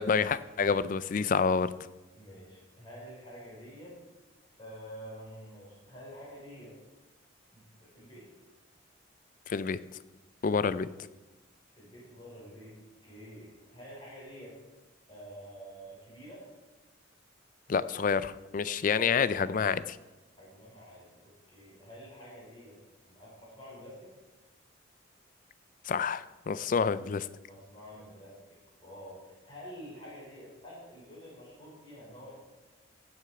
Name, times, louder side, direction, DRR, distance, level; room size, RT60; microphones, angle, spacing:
voice 1, 0.0-1.7 9.5-9.8 10.4-10.9 17.7-20.0 25.9-27.3, left 5 dB, 40° left, 16 dB, 0.4 m, -28 dB
voice 2, 2.1-4.0 4.6-6.8 7.5-8.3 11.7-14.6 15.1-16.4 20.4-22.8 23.1-24.1 27.4-32.4, equal, 25° left, -6 dB, 4.7 m, -48 dB
16.0 x 6.5 x 4.8 m, 1.1 s
head